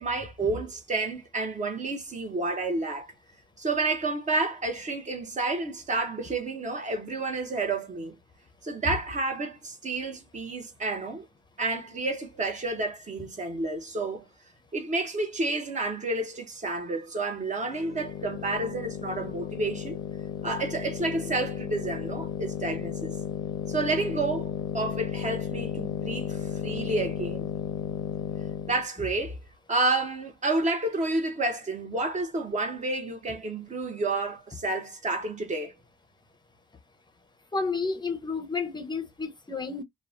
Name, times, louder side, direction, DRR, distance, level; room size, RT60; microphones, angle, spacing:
voice 1, 0.0-3.1 3.6-8.2 8.6-11.3 11.6-14.3 14.7-20.0 20.4-23.2 23.7-27.5 28.7-29.4 29.7-35.7, right 3 dB, 35° right, 0.8 m, -30 dB
sound 1, 17.6-28.9, left 9 dB, 75° left, 0.6 m, -34 dB
voice 2, 37.5-39.8, left 4 dB, 20° left, 0.6 m, -31 dB
2.8 x 2.0 x 2.4 m
cardioid pair, 90°, 20 cm